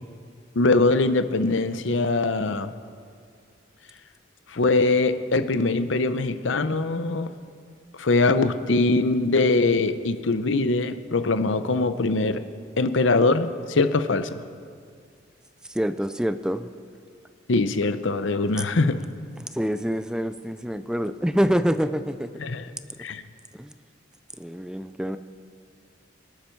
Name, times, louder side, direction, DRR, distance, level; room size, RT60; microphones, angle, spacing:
voice 1, 0.6-2.7 4.5-7.3 8.0-12.4 12.8-14.3 17.5-19.0 22.4-22.7 23.0-23.2, left 3 dB, 80° left, 11 dB, 0.8 m, -22 dB
voice 2, 15.7-16.7 19.4-22.3 23.5-23.7 24.4-25.2, equal, 5° right, 11 dB, 0.4 m, -26 dB
26.0 x 11.5 x 4.6 m, 2.2 s
head